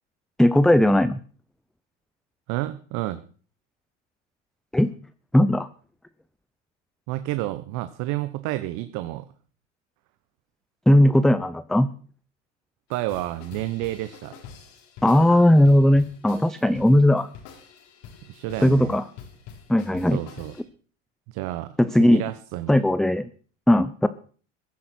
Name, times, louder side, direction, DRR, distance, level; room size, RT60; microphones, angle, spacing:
voice 1, 0.4-1.2 4.7-4.9 5.3-5.7 10.9-11.9 15.0-17.3 18.6-19.0 19.7-20.2 21.8-22.2 22.7-23.3 23.7-24.1, left 1 dB, ahead, 14 dB, 0.6 m, -18 dB
voice 2, 2.5-3.2 7.1-9.2 12.9-14.4 18.3-19.0 20.1-20.5 21.3-21.7 22.0-22.8, right 16 dB, 55° right, 11 dB, 1.1 m, -30 dB
sound 1, 12.9-20.6, left 7 dB, 60° left, 4.1 m, -46 dB
15.5 x 12.0 x 4.4 m, 0.43 s
hypercardioid pair, 90°, 36 cm